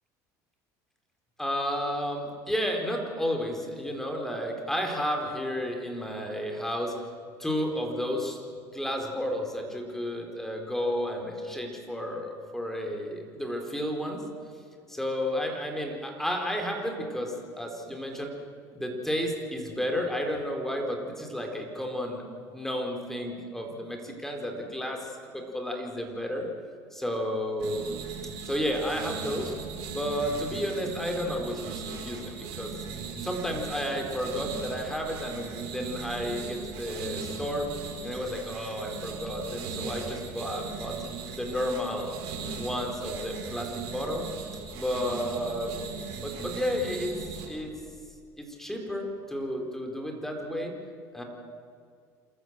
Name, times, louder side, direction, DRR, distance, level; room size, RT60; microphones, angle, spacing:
voice 1, 1.4-6.9 7.4-8.4 8.7-14.2 14.9-18.3 18.7-22.2 22.5-26.5 26.9-28.0 28.4-29.5 29.9-32.7 33.2-37.7 38.0-41.0 41.4-42.2 42.6-44.2 44.7-45.7 46.2-47.1 47.5-47.7 48.4-50.7 51.1-51.2, equal, 5° left, 2 dB, 4.1 m, -32 dB
sound 1, 27.6-47.4, right 5 dB, 75° right, 6.1 m, -38 dB
27.5 x 14.0 x 7.5 m, 2.2 s
supercardioid pair, 100°, 8 cm